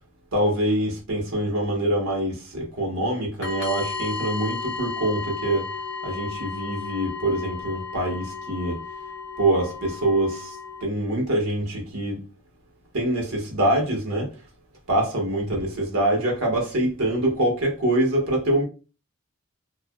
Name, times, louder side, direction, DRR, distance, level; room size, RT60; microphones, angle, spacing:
voice 1, 0.3-5.7 6.0-8.8 9.4-10.6 10.8-12.2 12.9-14.3 14.9-18.6, right 1 dB, 80° right, 1.0 m, -24 dB
sound 1, 3.4-10.8, left 4 dB, 50° left, 0.7 m, -34 dB
2.8 x 2.3 x 2.2 m
head